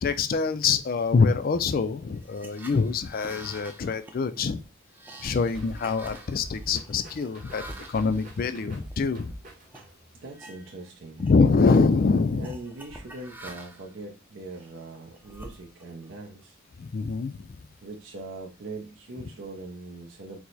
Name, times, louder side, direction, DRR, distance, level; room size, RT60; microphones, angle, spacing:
voice 1, 0.0-4.6 5.2-9.3 11.2-12.5 16.8-17.6, left 4 dB, 45° left, 10 dB, 0.4 m, -25 dB
sound 1, 2.1-9.2 9.7-9.9 10.3-10.9 11.1-11.8 12.4-13.9 14.5-16.1, right 1 dB, 10° right, 0.5 m, -47 dB
sound 2, 5.2-10.2, right 1 dB, 40° right, 1.2 m, -45 dB
voice 2, 10.1-11.3 12.3-16.6 17.8-20.4, right 2 dB, 65° right, 0 dB, 0.7 m, -41 dB
4.6 x 2.1 x 4.0 m, 0.30 s
head